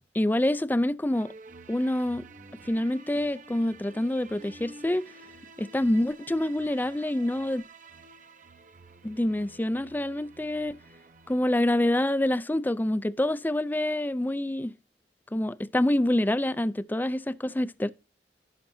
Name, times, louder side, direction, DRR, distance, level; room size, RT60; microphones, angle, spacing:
voice 1, 0.1-1.3 1.7-2.2 2.7-5.1 5.6-7.6 9.0-10.8 11.3-14.7 15.3-17.9, left 1 dB, 10° left, 0.4 m, -26 dB
sound 1, 1.1-12.5, right 3 dB, 45° right, 0.9 m, -50 dB
16.5 x 5.8 x 2.7 m
head